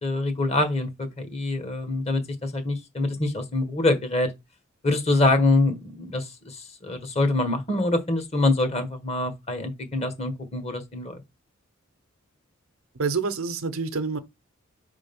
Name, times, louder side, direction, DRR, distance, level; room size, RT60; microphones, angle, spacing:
voice 1, 0.0-4.3 4.8-11.2, left 2 dB, 30° left, 1.4 m, -25 dB
voice 2, 12.9-14.2, right 4 dB, 90° right, 0.8 m, -27 dB
5.0 x 3.7 x 5.3 m
head